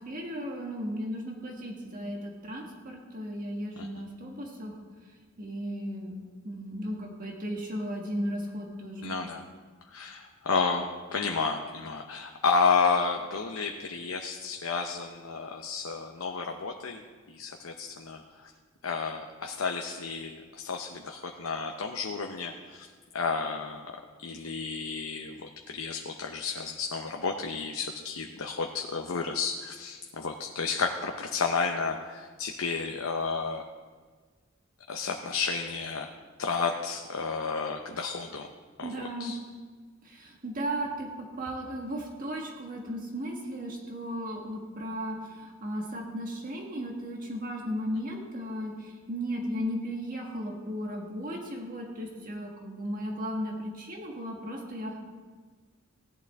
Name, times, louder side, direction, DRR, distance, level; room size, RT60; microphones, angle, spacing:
voice 1, 0.0-4.7 5.4-9.2 38.8-39.3 40.0-55.0, equal, 40° right, 0 dB, 1.5 m, -35 dB
voice 2, 9.0-9.4 9.9-18.5 18.8-23.9 24.2-33.6 34.9-36.1 36.4-38.5 38.8-38.9 39.2-39.4, left 4 dB, 85° left, 3 dB, 0.8 m, -31 dB
16.5 x 11.0 x 3.5 m, 1.5 s
head